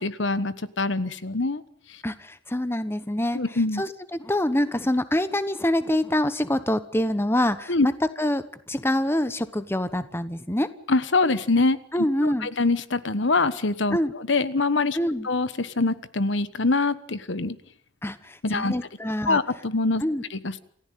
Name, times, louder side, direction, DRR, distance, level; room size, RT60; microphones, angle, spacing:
voice 1, 0.0-1.6 3.3-3.8 7.7-7.9 10.9-11.8 12.2-15.0 15.2-17.6 18.4-18.7 19.2-20.0 20.3-20.6, left 3 dB, 65° left, 14 dB, 1.2 m, -24 dB
voice 2, 2.0-3.4 3.8-7.9 8.2-10.7 11.9-12.5 13.9-14.1 14.9-15.3 18.0-19.4 20.0-20.2, left 1 dB, 10° left, 12 dB, 1.0 m, -25 dB
28.5 x 15.5 x 9.2 m, 0.68 s
head